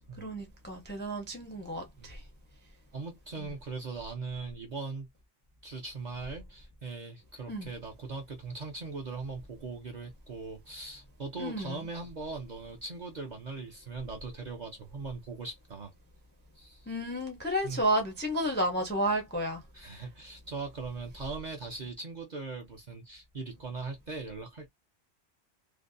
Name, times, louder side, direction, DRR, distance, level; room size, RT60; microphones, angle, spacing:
voice 1, 0.2-2.2 3.4-3.5 7.5-7.7 11.4-11.9 16.9-20.0, right 1 dB, 15° left, 0.4 m, -32 dB
voice 2, 2.9-5.1 5.6-15.9 16.5-16.9 17.6-17.8 19.7-24.7, right 4 dB, 50° right, 0.6 m, -40 dB
2.6 x 2.1 x 2.5 m
omnidirectional pair, 1.2 m